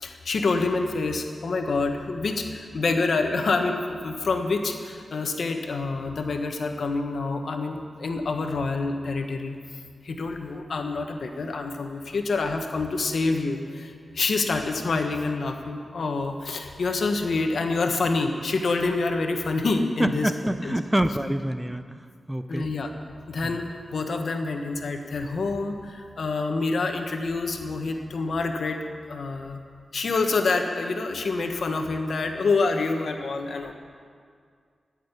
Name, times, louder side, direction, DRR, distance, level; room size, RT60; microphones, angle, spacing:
voice 1, 0.0-9.6 10.1-13.9 14.1-20.3 20.6-20.8 22.5-22.9 23.3-25.9 26.2-28.8 29.1-29.6 29.9-33.7, left 3 dB, 70° left, 4 dB, 1.4 m, -27 dB
voice 2, 20.0-22.7 23.4-23.6, right 1 dB, 10° right, 10 dB, 0.7 m, -27 dB
16.0 x 6.6 x 9.8 m, 2.1 s
cardioid pair, 55°, 0 cm